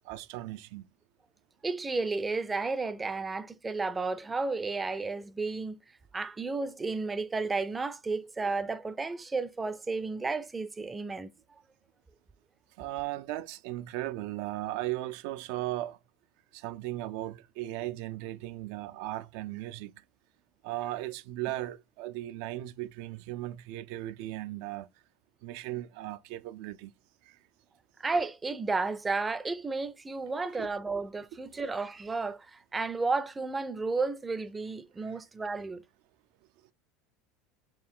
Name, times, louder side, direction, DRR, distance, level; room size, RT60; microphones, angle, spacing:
voice 1, 0.0-0.9 12.8-16.0 16.5-20.0 20.6-24.9 25.4-26.9 27.2-27.4 30.6-30.7 31.5-31.6 35.0-35.1, right 16 dB, 70° right, 0.4 m, -37 dB
voice 2, 1.6-5.8 6.1-11.3 28.0-35.8, right 3 dB, 15° right, 0.5 m, -32 dB
4.6 x 2.5 x 3.5 m
supercardioid pair, 120°, 0 cm